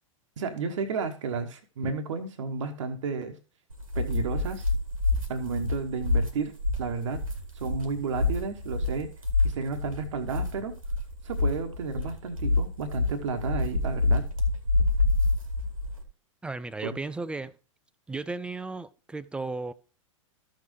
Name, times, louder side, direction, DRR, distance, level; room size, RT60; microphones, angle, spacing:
voice 1, 0.4-3.4 3.9-4.7 5.3-7.2 7.5-9.1 9.4-10.8 11.2-14.2 16.8-17.0, right 5 dB, 65° right, 1.2 m, -32 dB
sound 1, 3.7-16.0, left 2 dB, 90° right, 1.9 m, -27 dB
voice 2, 16.4-17.5 18.1-19.7, right 3 dB, 5° right, 0.4 m, -35 dB
13.5 x 6.7 x 3.1 m
figure-of-eight pair, 100°, 17 cm